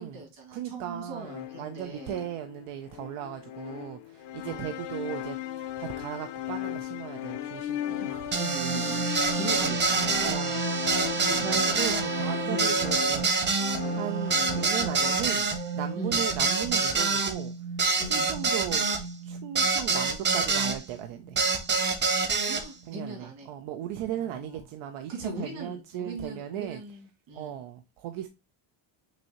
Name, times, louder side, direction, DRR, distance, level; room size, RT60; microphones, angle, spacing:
voice 1, 0.0-2.2 4.4-4.8 7.7-10.3 11.2-11.5 12.4-12.8 13.9-14.1 15.9-16.2 18.0-18.3 22.4-23.5 24.1-24.6 25.1-27.5, right 2 dB, 60° right, 2.7 m, -40 dB
voice 2, 0.5-8.3 9.0-9.1 9.5-9.7 10.2-10.7 11.4-13.5 13.8-17.5 18.0-18.9 19.2-21.4 22.9-26.8 27.3-28.3, right 11 dB, 90° right, 0.7 m, -37 dB
sound 1, 1.2-15.1, left 12 dB, 60° left, 0.5 m, -37 dB
sound 2, 8.3-20.8 21.4-22.6, right 4 dB, 25° right, 0.5 m, -27 dB
6.0 x 2.7 x 2.9 m
cardioid pair, 180°, 49 cm